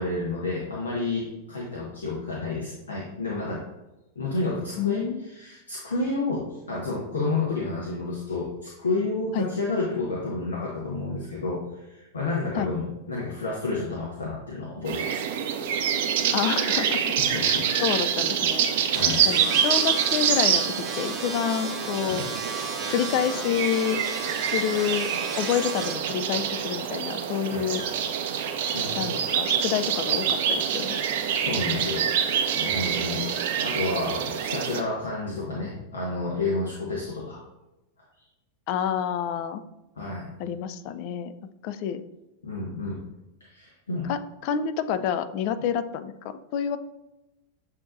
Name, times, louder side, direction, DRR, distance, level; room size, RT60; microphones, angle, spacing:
voice 1, 0.0-3.7 4.2-15.4 17.2-17.6 18.9-19.2 22.1-22.3 27.4-27.7 28.7-29.1 31.4-32.1 32.5-37.4 40.0-40.3 42.4-43.0 43.4-44.1, left 3 dB, 70° left, -4 dB, 0.9 m, -30 dB
voice 2, 4.8-5.2 9.3-9.5 12.6-12.7 16.3-17.0 17.4-18.7 19.1-22.2 22.9-24.0 24.5-27.8 29.0-31.0 38.7-39.6 40.4-41.3 41.6-42.0 44.1-46.8, left 9 dB, 45° left, 11 dB, 0.3 m, -28 dB
sound 1, 14.9-34.8, right 8 dB, 55° right, 0.4 m, -26 dB
sound 2, 18.9-26.0, right 4 dB, 25° right, 0.9 m, -35 dB
7.3 x 2.7 x 2.6 m, 0.97 s
figure-of-eight pair, 90°, 0 cm